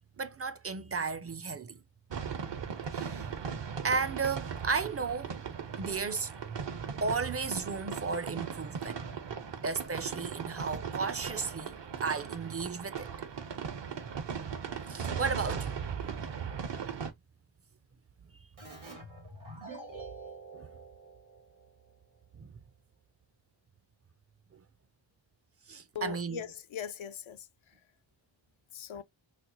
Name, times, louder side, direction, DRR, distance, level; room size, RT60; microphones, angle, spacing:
voice 1, 0.2-1.8 2.9-3.3 3.8-5.3 5.8-9.1 9.6-11.7 12.0-13.1 14.9-15.8 16.0-16.4 20.5-20.7 22.3-22.5 24.5-24.6 25.7-26.4, right 4 dB, 35° right, 0.4 m, -34 dB
sound 1, 2.1-17.1, right 7 dB, 65° right, 0.8 m, -38 dB
Keyboard (musical), 18.6-21.9, right 3 dB, 85° right, 2.2 m, -47 dB
voice 2, 25.9-27.5 28.7-29.0, left 7 dB, 90° left, 0.6 m, -40 dB
4.1 x 2.1 x 2.9 m
wide cardioid pair, 65°, 46 cm